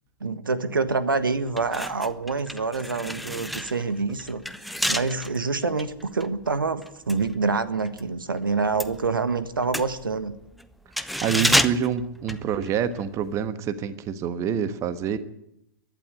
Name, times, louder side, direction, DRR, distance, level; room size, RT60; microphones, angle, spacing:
voice 1, 0.2-10.4, right 4 dB, 75° right, 13 dB, 1.5 m, -26 dB
sound 1, 0.9-1.0 1.5-8.1 8.4-13.0 13.3-13.5, equal, ahead, 0.8 m, -30 dB
voice 2, 11.2-15.2, right 8 dB, 25° right, 12 dB, 1.3 m, -27 dB
23.0 x 12.0 x 9.8 m, 0.81 s
figure-of-eight pair, 105°, 11 cm